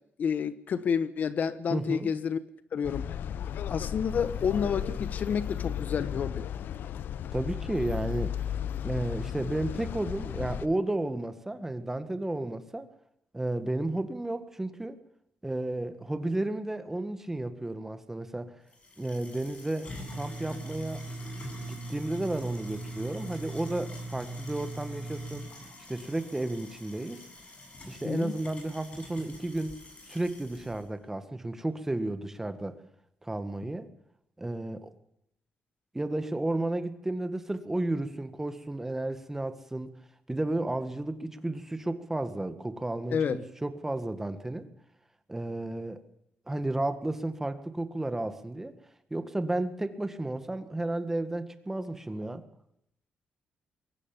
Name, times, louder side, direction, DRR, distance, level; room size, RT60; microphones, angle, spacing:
voice 1, 0.2-2.4 2.7-3.1 3.7-6.4 28.0-28.4 43.1-43.4, left 7 dB, 55° left, 1.2 m, -29 dB
voice 2, 1.7-2.1 7.3-8.4 8.8-12.9 13.3-15.0 15.4-18.5 19.0-21.0 21.6-25.5 25.9-27.2 27.9-29.8 30.1-32.8 33.2-33.9 34.4-34.9 35.9-39.9 40.3-44.7 45.3-46.0 46.5-48.7 49.1-52.4, right 2 dB, 10° right, 1.9 m, -32 dB
sound 1, 2.8-10.7, left 9 dB, 75° left, 0.8 m, -34 dB
sound 2, 18.7-30.8, right 1 dB, 35° left, 7.7 m, -42 dB
22.5 x 18.0 x 7.3 m
cardioid pair, 130°, 3 cm